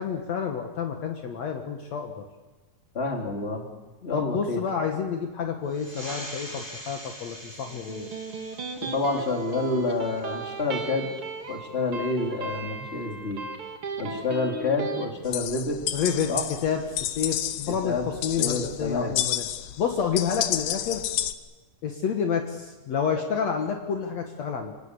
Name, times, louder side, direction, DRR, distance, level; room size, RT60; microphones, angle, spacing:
voice 1, 0.0-2.3 4.1-8.1 14.0-14.2 15.9-16.3 16.6-19.4 19.8-21.0 21.8-24.7, left 6 dB, 60° left, 3 dB, 2.5 m, -29 dB
voice 2, 2.9-3.6 4.0-4.6 8.8-11.1 11.5-13.4 14.0-15.8 16.3-16.4 17.7-18.0 18.4-19.1, left 3 dB, 20° left, 2 dB, 3.2 m, -28 dB
sound 1, 5.7-10.8, equal, 10° right, 4.1 m, -43 dB
Electric guitar, 7.7-15.1, right 3 dB, 45° right, 2.7 m, -36 dB
sound 2, 15.3-21.3, left 12 dB, 85° left, 2.5 m, -30 dB
26.0 x 18.5 x 8.3 m, 1.2 s
omnidirectional pair, 3.6 m